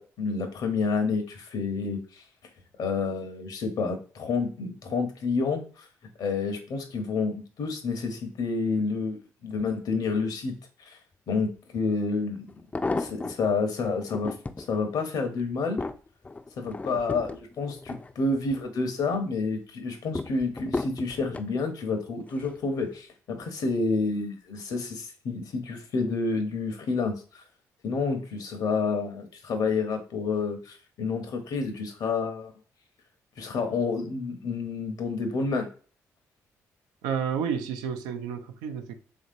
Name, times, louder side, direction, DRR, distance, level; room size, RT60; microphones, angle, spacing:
voice 1, 0.0-2.2 2.8-5.8 6.2-10.5 10.9-11.0 11.3-12.5 13.0-14.3 14.7-15.8 16.6-27.4 27.8-32.5 33.4-35.7, left 4 dB, 65° left, 0.8 m, -29 dB
sound 1, 11.7-11.8 12.5-13.5 14.0-14.7 15.2-18.6 19.0-19.5 20.1-21.5 22.3-22.6 22.9-23.0, left 3 dB, 20° left, 0.4 m, -34 dB
voice 2, 37.0-38.9, right 7 dB, 85° right, 0.4 m, -30 dB
3.1 x 2.7 x 2.5 m
hypercardioid pair, 55°, 7 cm